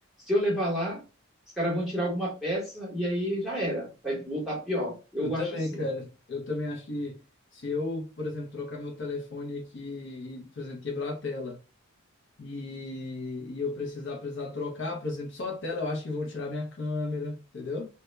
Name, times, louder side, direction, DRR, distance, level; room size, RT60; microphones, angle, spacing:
voice 1, 0.3-1.0 1.6-5.8, equal, ahead, 0.8 m, -29 dB
voice 2, 5.2-7.2 7.5-11.6 12.4-17.9, left 3 dB, 50° left, 0.4 m, -34 dB
2.0 x 2.0 x 3.1 m
head